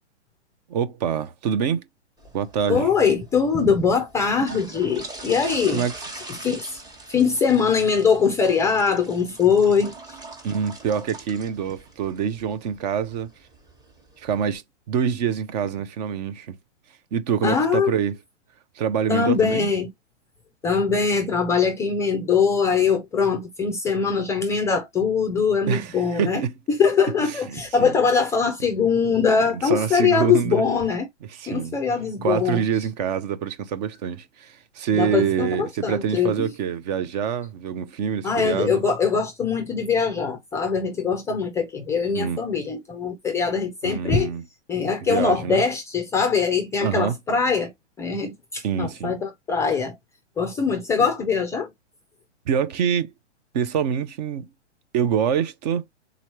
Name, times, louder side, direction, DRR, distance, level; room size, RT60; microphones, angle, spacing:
voice 1, 0.7-1.8 2.3-2.9 5.7-5.9 10.4-13.3 14.2-16.6 17.1-18.2 18.8-19.7 25.7-26.5 27.3-27.9 29.6-30.6 31.3-31.7 32.2-38.8 42.1-42.4 43.8-44.4 45.0-45.6 46.8-47.1 48.6-49.1 52.5-53.1 53.5-54.5 54.9-55.8, right 8 dB, 35° right, 0.6 m, -25 dB
Toilet Flush, 2.2-14.6, right 2 dB, 10° right, 1.1 m, -42 dB
voice 2, 2.7-5.8 6.4-6.8 7.1-10.2 17.4-17.9 19.1-19.9 20.6-26.4 26.7-31.1 31.5-32.6 35.0-36.5 38.2-44.3 44.7-47.7 48.0-49.9 50.4-51.7, left 6 dB, 10° left, 0.4 m, -22 dB
3.8 x 3.1 x 2.9 m
hypercardioid pair, 130°, 35 cm